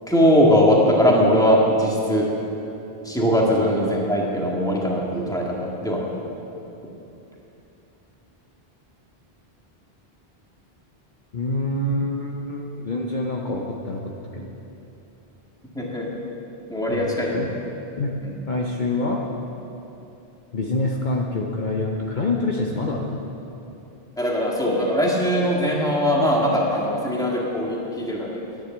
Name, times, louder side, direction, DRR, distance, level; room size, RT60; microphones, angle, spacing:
voice 1, 0.1-2.3 3.0-6.0 15.7-16.1 16.7-17.5 18.2-18.3 24.2-28.3, equal, 5° left, -3 dB, 1.8 m, -20 dB
voice 2, 11.3-14.6 16.9-17.5 18.0-18.2 18.5-19.2 20.5-23.2, left 2 dB, 50° left, -1 dB, 1.0 m, -26 dB
10.5 x 9.9 x 7.3 m, 2.9 s
omnidirectional pair, 1.0 m